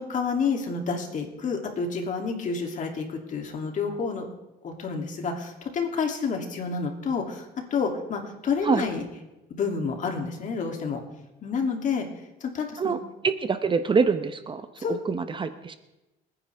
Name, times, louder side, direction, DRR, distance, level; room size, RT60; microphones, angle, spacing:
voice 1, 0.0-4.3 4.6-9.0 9.6-11.0 11.4-12.1 12.4-13.0 14.8-15.0, left 5 dB, 50° left, 2 dB, 2.8 m, -29 dB
voice 2, 13.2-15.8, right 5 dB, 30° right, 10 dB, 0.9 m, -25 dB
28.0 x 9.9 x 3.5 m, 0.99 s
cardioid pair, 110°, 17 cm